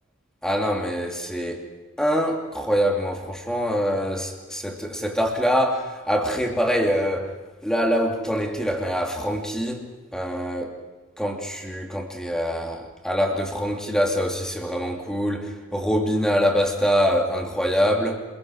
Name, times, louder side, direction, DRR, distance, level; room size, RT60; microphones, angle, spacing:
voice 1, 0.4-1.6 2.0-7.3 7.6-10.8 11.2-18.2, equal, 5° left, 1 dB, 2.8 m, -24 dB
26.5 x 22.0 x 6.4 m, 1.2 s
head